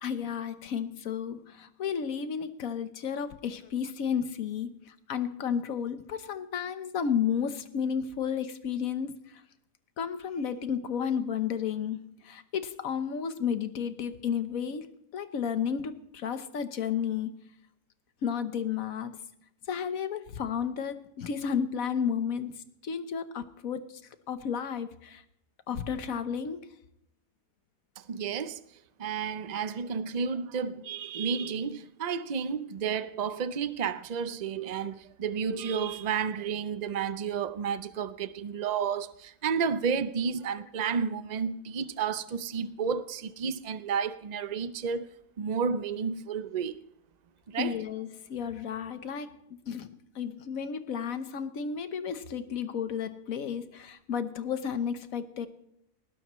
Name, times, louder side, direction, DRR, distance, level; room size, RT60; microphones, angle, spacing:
voice 1, 0.0-9.1 10.0-17.3 18.2-19.2 19.7-24.0 24.3-25.2 25.7-26.7 47.6-49.9 50.1-55.5, left 7 dB, 60° left, 1.4 m, -32 dB
voice 2, 28.1-28.6 29.0-45.1 45.4-46.8 47.5-47.8, right 6 dB, 55° right, 0.4 m, -31 dB
19.5 x 17.0 x 3.1 m
omnidirectional pair, 1.7 m